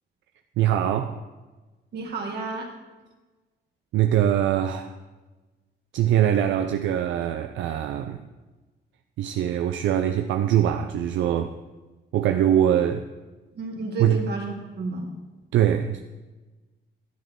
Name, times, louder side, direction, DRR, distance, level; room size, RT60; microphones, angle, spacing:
voice 1, 0.6-1.2 3.9-4.9 5.9-8.2 9.2-11.6 12.1-13.1 14.0-14.2 15.5-16.0, right 10 dB, 85° right, 6 dB, 0.5 m, -22 dB
voice 2, 1.9-2.7 13.5-15.1, right 3 dB, 60° right, 0 dB, 2.1 m, -31 dB
12.0 x 7.9 x 3.7 m, 1.2 s
cardioid pair, 115°, 19 cm